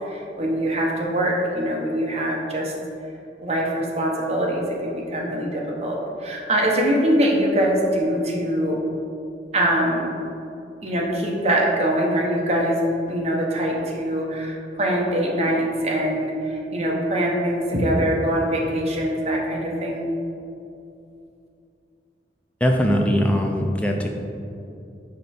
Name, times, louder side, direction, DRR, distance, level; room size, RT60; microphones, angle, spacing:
voice 1, 0.0-2.7 3.4-8.8 9.5-10.1 10.8-12.8 13.1-20.1, right 1 dB, 35° right, -2 dB, 0.8 m, -23 dB
voice 2, 22.6-24.1, equal, 5° left, 1 dB, 0.4 m, -20 dB
5.2 x 4.4 x 4.2 m, 2.6 s
head